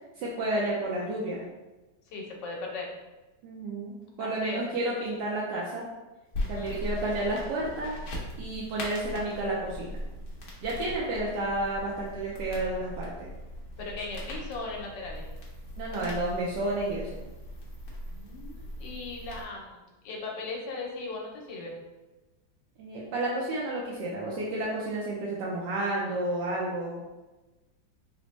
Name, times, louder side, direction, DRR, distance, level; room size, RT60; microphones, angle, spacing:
voice 1, 0.2-1.4 3.4-5.8 6.5-8.0 8.4-10.0 10.6-13.3 15.8-17.2 22.8-27.0, right 1 dB, 80° right, -5 dB, 1.2 m, -31 dB
voice 2, 2.1-2.9 4.2-4.6 6.4-6.8 13.8-15.3 18.1-21.7, left 3 dB, 85° left, -1 dB, 1.4 m, -38 dB
sound 1, 6.3-19.4, equal, 60° left, 1.1 m, -39 dB
4.0 x 2.1 x 3.1 m, 1.1 s
omnidirectional pair, 1.9 m